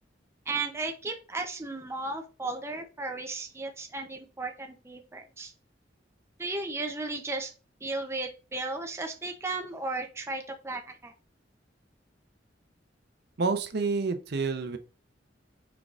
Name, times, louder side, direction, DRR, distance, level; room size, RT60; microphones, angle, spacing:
voice 1, 0.5-5.5 6.4-7.5 7.8-11.1, right 3 dB, 15° right, 4 dB, 0.5 m, -35 dB
voice 2, 13.4-14.8, right 4 dB, 60° right, 9 dB, 0.6 m, -28 dB
4.5 x 3.9 x 2.4 m, 0.34 s
head